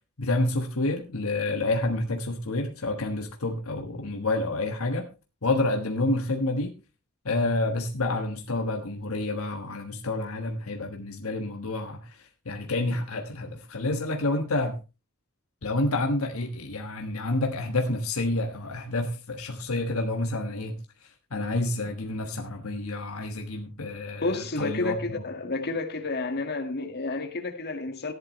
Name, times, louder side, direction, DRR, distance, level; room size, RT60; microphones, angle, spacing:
voice 1, 0.2-5.1 5.4-6.8 7.2-14.8 15.6-25.2, left 2 dB, 70° left, 1.4 m, -29 dB
voice 2, 24.2-28.1, left 2 dB, 50° left, 1.8 m, -30 dB
14.5 x 10.5 x 3.2 m
head